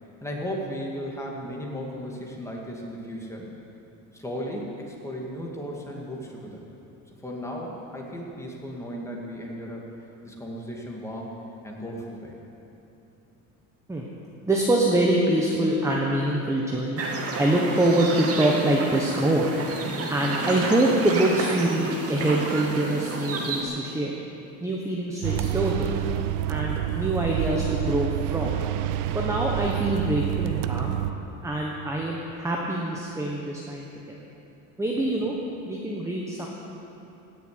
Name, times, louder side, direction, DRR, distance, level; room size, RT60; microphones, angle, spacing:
voice 1, 0.2-3.5 4.1-6.6 7.2-9.8 10.2-11.3 11.6-12.3 35.0-35.1, equal, 10° left, -2 dB, 2.4 m, -35 dB
voice 2, 14.5-17.0 17.4-19.5 20.1-24.1 24.6-26.1 26.5-28.6 29.1-31.0 31.4-34.1 34.8-35.4 35.6-36.5, right 1 dB, 10° right, -2 dB, 1.3 m, -25 dB
sound 1, 17.0-23.6, right 3 dB, 40° right, 2.1 m, -31 dB
sound 2, 25.2-31.1, right 12 dB, 55° right, 0.7 m, -28 dB
17.0 x 7.0 x 9.8 m, 2.9 s
cardioid pair, 135°, 37 cm